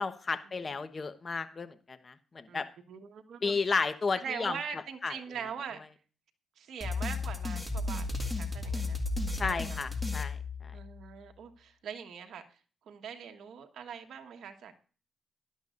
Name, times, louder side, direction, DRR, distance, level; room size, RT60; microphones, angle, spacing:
voice 1, 0.0-2.7 3.4-4.5 5.0-5.1 9.3-10.7, left 4 dB, 40° left, 11 dB, 1.1 m, -33 dB
voice 2, 2.5-3.6 4.2-5.8 6.6-9.0 9.5-9.8 10.7-12.4 12.9-14.7, right 7 dB, 70° right, 5 dB, 1.3 m, -42 dB
sound 1, 6.8-11.1, left 3 dB, ahead, 1.9 m, -34 dB
16.5 x 11.5 x 2.6 m, 0.38 s
cardioid pair, 85°, 0 cm